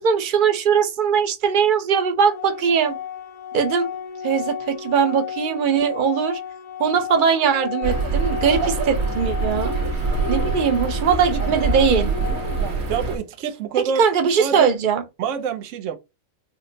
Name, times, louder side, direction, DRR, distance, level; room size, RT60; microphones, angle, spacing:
voice 1, 0.0-3.0 3.5-3.9 4.2-6.4 6.8-9.8 10.3-12.1 14.0-15.0, right 6 dB, 50° right, 0.6 m, -20 dB
Organ, 2.3-13.3, left 8 dB, 80° left, 1.4 m, -33 dB
sound 1, 7.8-13.2, right 3 dB, 85° right, 1.4 m, -24 dB
voice 2, 12.9-14.0 14.4-14.8 15.2-16.0, right 7 dB, 70° right, 1.0 m, -26 dB
4.9 x 2.1 x 2.7 m
omnidirectional pair, 1.4 m